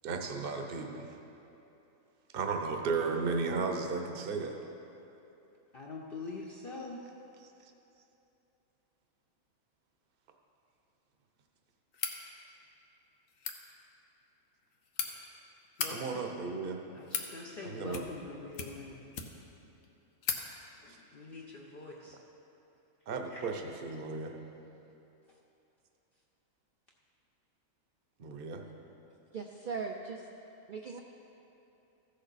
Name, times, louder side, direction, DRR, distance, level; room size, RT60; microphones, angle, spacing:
voice 1, 0.0-1.1 2.3-4.6 15.9-16.8 17.6-18.0 20.9-21.0 23.1-24.4 28.2-28.6, right 4 dB, 50° right, 4 dB, 0.9 m, -34 dB
voice 2, 5.7-7.1 15.8-16.5 16.9-19.1 20.8-22.2 23.3-23.5, left 3 dB, 50° left, -2 dB, 0.8 m, -45 dB
sound 1, 11.9-12.2 13.3-13.6 14.5-15.1 15.6-15.9 16.7-17.3 17.9-18.3 18.5-19.5 19.8-19.9 20.2-20.4, left 7 dB, 75° left, 1.2 m, -36 dB
voice 3, 29.3-30.3 30.7-31.0, right 5 dB, 75° right, 2 dB, 0.4 m, -39 dB
14.5 x 6.6 x 4.0 m, 2.9 s
omnidirectional pair, 1.4 m